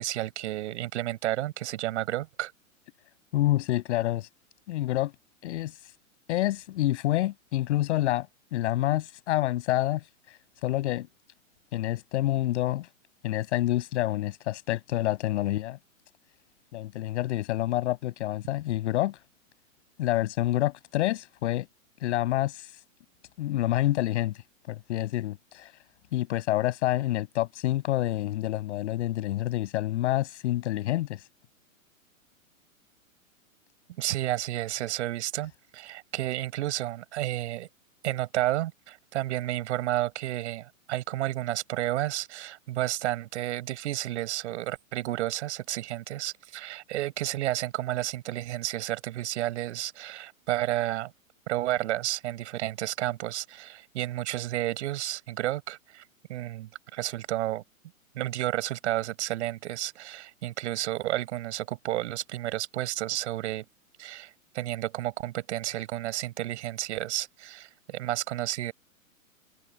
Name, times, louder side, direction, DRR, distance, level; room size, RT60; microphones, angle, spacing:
voice 1, 0.0-2.5 34.0-37.7 38.0-51.1 51.5-56.0 56.3-57.6 58.1-63.6 64.0-68.7, right 15 dB, 55° right, 7.2 m, -31 dB
voice 2, 3.3-4.3 4.7-5.1 5.4-5.7 6.3-8.3 8.5-10.0 10.6-11.1 11.7-12.9 13.2-15.8 16.7-19.2 20.0-21.7 22.0-22.7 23.4-24.3 24.7-25.7 26.1-31.2, left 15 dB, 55° left, 7.5 m, -27 dB
hypercardioid pair, 120°, 42 cm